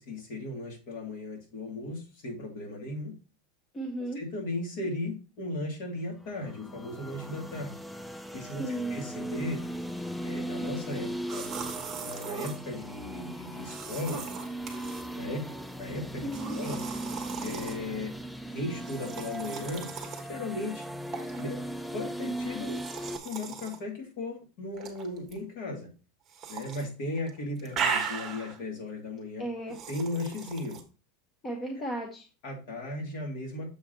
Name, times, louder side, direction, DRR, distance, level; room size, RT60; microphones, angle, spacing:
voice 1, 0.0-3.1 4.1-7.8 8.3-8.6 8.9-9.6 10.2-11.5 12.0-14.2 15.1-15.5 15.8-16.3 16.5-16.8 17.4-18.1 18.5-19.9 20.3-20.9 21.4-21.6 21.9-22.8 23.2-25.9 26.5-29.4 29.9-30.8 32.4-33.7, left 2 dB, 50° left, 0 dB, 2.8 m, -36 dB
voice 2, 3.7-4.2 8.6-9.0 16.2-16.6 29.4-29.8 31.4-32.2, right 1 dB, 15° left, 1 dB, 1.0 m, -34 dB
sound 1, 6.3-23.2, right 1 dB, ahead, 0.3 m, -38 dB
sound 2, 11.3-12.6 13.6-15.1 16.3-17.8 18.8-20.3 21.1-21.4 22.6-23.8 24.7-25.4 26.3-26.9 27.2-28.6 29.7-30.8, right 6 dB, 20° right, 1.3 m, -37 dB
7.1 x 5.0 x 3.9 m, 0.32 s
supercardioid pair, 170°, 0 cm